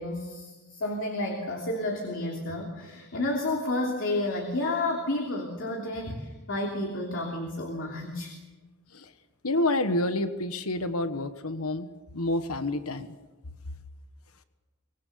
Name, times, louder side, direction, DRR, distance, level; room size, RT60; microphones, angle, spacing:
voice 1, 0.0-8.3, left 2 dB, 60° left, 1 dB, 3.0 m, -31 dB
voice 2, 9.4-11.9 12.1-13.1, left 1 dB, 75° left, 10 dB, 1.3 m, -28 dB
24.5 x 21.0 x 6.8 m, 1.2 s
head